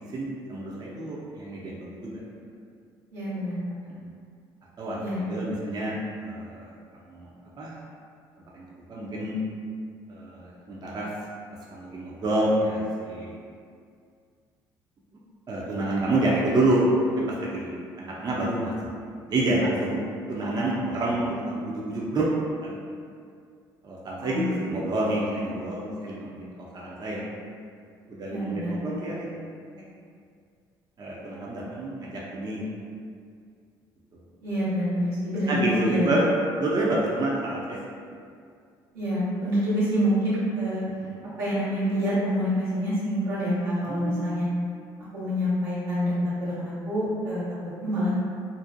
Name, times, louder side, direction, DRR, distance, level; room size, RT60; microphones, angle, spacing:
voice 1, 0.1-2.2 4.8-5.0 5.3-6.7 7.1-7.3 7.6-7.8 8.5-9.4 10.1-11.1 11.7-13.3 15.5-16.9 17.2-18.7 19.3-20.0 20.3-22.3 22.6-22.8 23.8-27.3 28.1-29.4 31.0-32.6 35.5-36.3 36.6-37.8 41.0-41.2 43.9-44.4, right 1 dB, 35° right, -5 dB, 0.5 m, -28 dB
voice 2, 3.1-3.9 5.0-5.2 24.2-24.6 28.3-28.7 34.4-36.1 38.9-40.8 41.4-44.5 45.1-46.1 46.4-47.4 47.8-48.1, equal, 90° right, -11 dB, 1.0 m, -27 dB
2.5 x 2.0 x 2.6 m, 2.2 s
hypercardioid pair, 60°, 12 cm